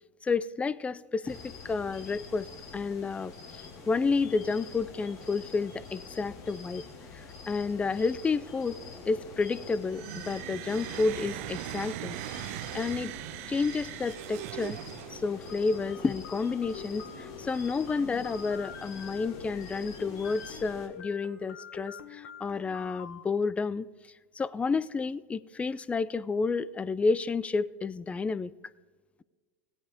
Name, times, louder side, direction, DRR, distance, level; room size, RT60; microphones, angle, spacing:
voice 1, 0.2-2.5 2.7-6.8 7.1-8.8 9.0-12.2 12.7-13.1 13.5-14.8 15.1-23.9 24.3-28.5, left 4 dB, 15° left, 19 dB, 0.4 m, -30 dB
sound 1, 1.2-20.9, left 4 dB, 45° left, 2.8 m, -46 dB
sound 2, 9.9-15.5, right 18 dB, 65° right, 0.4 m, -40 dB
sound 3, 15.2-23.2, left 8 dB, 65° left, 1.1 m, -46 dB
17.0 x 8.9 x 3.6 m, 1.4 s
hypercardioid pair, 100°, 8 cm